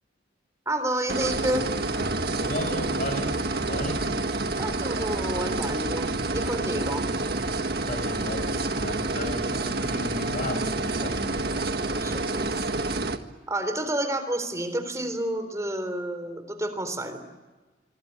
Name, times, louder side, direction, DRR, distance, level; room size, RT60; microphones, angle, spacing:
voice 1, 0.7-1.7 4.6-7.0 11.9-12.5 13.5-17.2, right 1 dB, 15° right, 9 dB, 3.7 m, -30 dB
sound 1, 1.1-13.2, right 2 dB, 60° right, 1.7 m, -28 dB
voice 2, 2.4-4.0 7.9-11.5, left 1 dB, 50° left, 7 dB, 6.7 m, -34 dB
25.5 x 24.5 x 8.9 m, 1.2 s
head